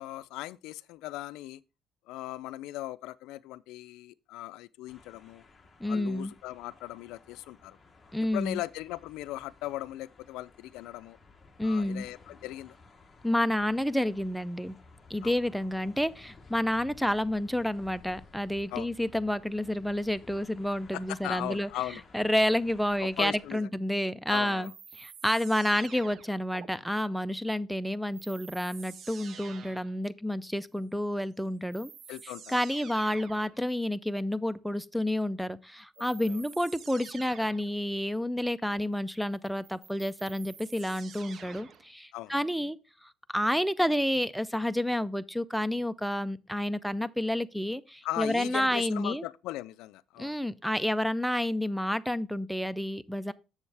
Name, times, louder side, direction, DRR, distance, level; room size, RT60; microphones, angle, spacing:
voice 1, 0.0-1.6 2.1-5.4 5.9-7.8 8.3-11.2 11.6-12.8 15.2-15.4 18.7-18.9 20.9-22.0 23.0-23.7 24.3-24.7 32.1-32.6 36.0-36.4 42.1-42.3 48.0-50.4, left 16 dB, 80° left, 0.3 m, -38 dB
sound 1, 4.9-23.5, left 3 dB, 15° left, 1.0 m, -56 dB
voice 2, 5.8-6.3 8.1-8.6 11.6-12.1 13.2-14.8 15.1-21.7 22.1-24.7 25.0-31.9 32.5-42.8 43.0-49.2 50.2-53.3, left 1 dB, ahead, 0.3 m, -30 dB
sound 2, 24.6-26.7 28.1-30.0 31.2-31.3 31.7-33.6 35.9-37.7 39.4-41.9, right 7 dB, 40° right, 0.6 m, -48 dB
7.1 x 7.1 x 3.3 m
cardioid pair, 145°, 0 cm